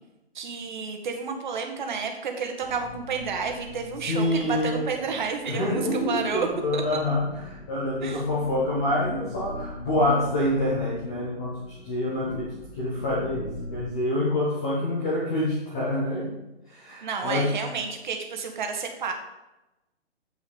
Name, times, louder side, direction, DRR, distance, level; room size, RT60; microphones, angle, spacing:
voice 1, 0.3-6.5 6.7-6.8 8.0-8.2 17.0-19.1, right 5 dB, 45° right, 3 dB, 2.0 m, -31 dB
sound 1, 2.6-13.9, left 1 dB, 75° left, 2.5 m, -42 dB
voice 2, 4.1-4.9 5.5-12.5 12.7-16.3 16.7-17.5, left 1 dB, 5° left, -7 dB, 0.4 m, -26 dB
15.5 x 5.5 x 5.2 m, 0.99 s
figure-of-eight pair, 135°, 32 cm